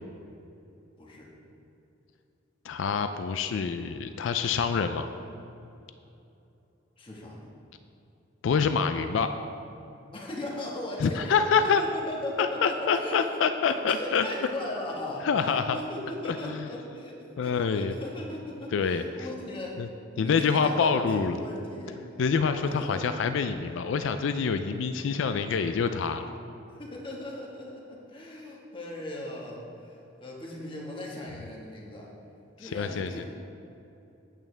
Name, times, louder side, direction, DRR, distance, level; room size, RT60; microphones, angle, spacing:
voice 1, 1.0-1.3 7.0-7.5 10.1-13.4 13.7-19.8 20.1-22.0 22.6-23.2 26.7-32.1 32.6-33.2, left 1 dB, 25° left, -3 dB, 1.4 m, -38 dB
voice 2, 2.6-5.1 8.4-9.3 11.0-11.8 12.4-14.3 15.2-15.8 16.2-16.7 17.4-18.0 18.7-19.3 19.8-19.9 20.2-21.4 22.2-26.3 32.6-33.2, left 5 dB, 70° left, 9 dB, 0.4 m, -26 dB
8.8 x 8.7 x 3.3 m, 2.8 s
head